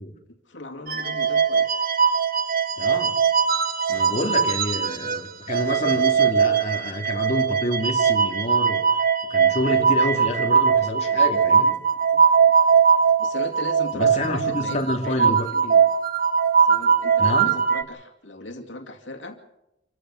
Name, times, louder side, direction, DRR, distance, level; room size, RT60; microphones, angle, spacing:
voice 1, 0.3-1.9 9.6-9.8 12.1-12.2 13.2-15.9 16.6-19.4, left 2 dB, 85° left, 3 dB, 2.4 m, -37 dB
sound 1, 0.9-5.2 5.5-17.8, right 6 dB, 50° right, 1.3 m, -20 dB
voice 2, 2.8-3.2 3.9-8.8 9.3-11.8 13.9-15.5 17.2-17.6, left 1 dB, 40° left, 1 dB, 3.1 m, -28 dB
27.0 x 16.0 x 6.7 m, 0.90 s
head